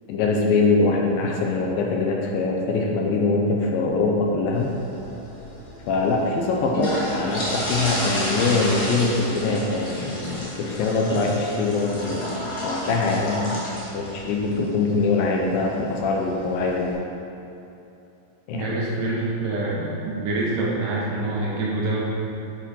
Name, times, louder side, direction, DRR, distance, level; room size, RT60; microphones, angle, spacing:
voice 1, 0.1-4.7 5.9-16.9 18.5-18.7, left 3 dB, 75° left, 0 dB, 2.4 m, -23 dB
sound 1, 4.5-16.9, equal, 35° left, 1.6 m, -32 dB
voice 2, 18.5-22.0, right 2 dB, 65° right, -5 dB, 2.7 m, -26 dB
8.3 x 8.3 x 4.4 m, 2.8 s
omnidirectional pair, 4.5 m